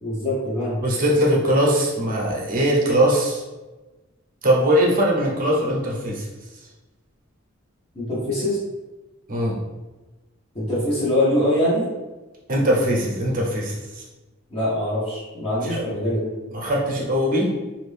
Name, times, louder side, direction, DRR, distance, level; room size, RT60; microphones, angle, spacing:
voice 1, 0.0-0.8 7.9-8.6 10.5-11.9 14.5-16.3, left 1 dB, 30° left, -9 dB, 0.9 m, -23 dB
voice 2, 0.8-3.4 4.4-6.2 9.3-9.6 12.5-13.7 15.6-15.9 16.5-17.5, equal, 45° right, -2 dB, 0.8 m, -20 dB
2.8 x 2.5 x 3.3 m, 1.2 s
head